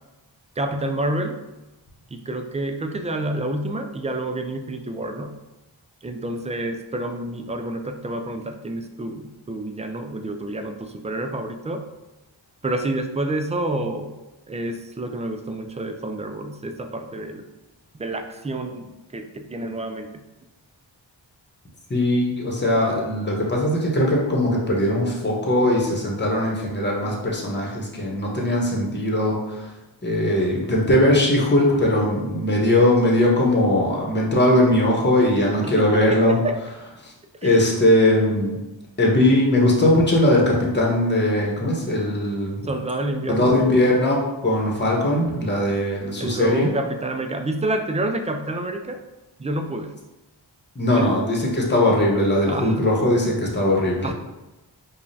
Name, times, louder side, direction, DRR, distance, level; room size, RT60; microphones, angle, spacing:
voice 1, 0.6-1.4 2.1-5.4 6.0-11.9 12.6-14.1 14.5-17.5 18.0-20.1 35.6-36.6 37.4-37.7 42.6-43.6 46.2-49.0 49.4-49.9 50.9-51.2 52.5-52.8 54.0-54.1, right 1 dB, 15° right, 5 dB, 0.3 m, -28 dB
voice 2, 21.9-29.7 30.0-36.4 37.0-37.1 37.4-38.6 39.0-42.7 43.3-46.7 50.7-54.1, left 1 dB, 20° left, -2 dB, 1.0 m, -20 dB
4.8 x 2.3 x 2.7 m, 1.0 s
cardioid pair, 45°, 47 cm